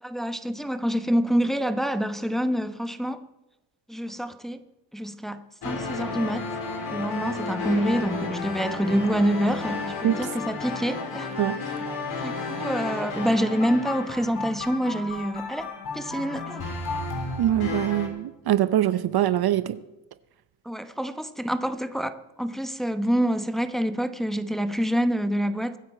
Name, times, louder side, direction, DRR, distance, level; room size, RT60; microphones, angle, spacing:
voice 1, 0.0-3.3 3.9-4.6 4.9-6.5 6.9-11.3 12.2-16.6 20.6-25.8, equal, ahead, 1.0 m, -27 dB
sound 1, 5.6-18.1, left 3 dB, 55° left, 4.2 m, -32 dB
voice 2, 11.4-11.8 17.4-19.8, right 12 dB, 55° right, 0.7 m, -23 dB
24.0 x 9.6 x 4.3 m
cardioid pair, 75°, 45 cm